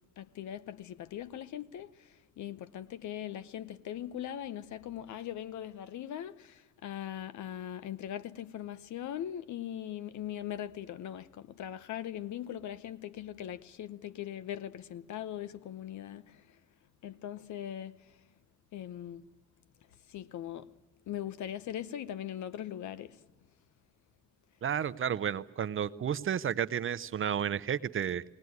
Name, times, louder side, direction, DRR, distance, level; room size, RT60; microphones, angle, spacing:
voice 1, 0.2-16.6 17.0-18.1 18.7-19.3 20.1-20.7 21.1-23.2, left 11 dB, 70° left, 0.9 m, -40 dB
voice 2, 24.6-28.2, right 8 dB, 45° right, 0.7 m, -32 dB
19.0 x 19.0 x 9.6 m
cardioid pair, 90°, 30 cm